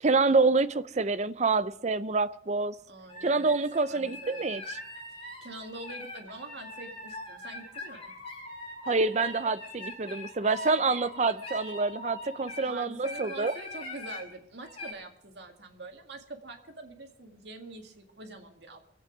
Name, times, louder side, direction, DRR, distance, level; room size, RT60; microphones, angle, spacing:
voice 1, 0.0-2.8 3.2-4.8 8.9-13.5, right 3 dB, 40° right, 0.5 m, -27 dB
voice 2, 2.9-3.5 3.9-4.6 5.2-8.2 12.6-18.8, right 2 dB, 70° right, 2.0 m, -44 dB
sound 1, 3.1-12.7 13.0-14.2 14.6-14.9, left 2 dB, 30° left, 4.3 m, -42 dB
25.0 x 8.5 x 4.9 m
head